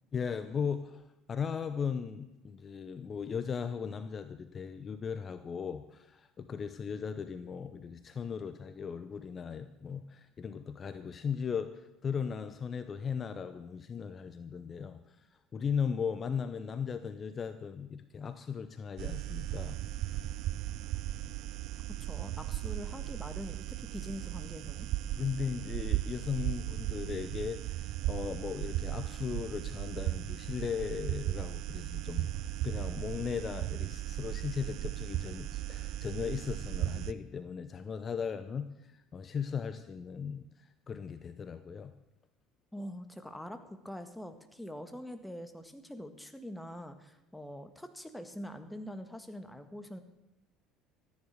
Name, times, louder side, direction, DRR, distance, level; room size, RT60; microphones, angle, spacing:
voice 1, 0.1-1.0 1.3-15.2 15.5-19.8 20.1-20.4 25.2-41.9, left 6 dB, 35° left, 11 dB, 0.8 m, -37 dB
sound 1, 19.0-37.1, right 14 dB, 60° right, 0.6 m, -36 dB
voice 2, 22.0-24.9 42.7-50.0, equal, 5° left, 8 dB, 1.6 m, -44 dB
14.0 x 9.8 x 6.5 m, 0.93 s
hypercardioid pair, 65°, 0 cm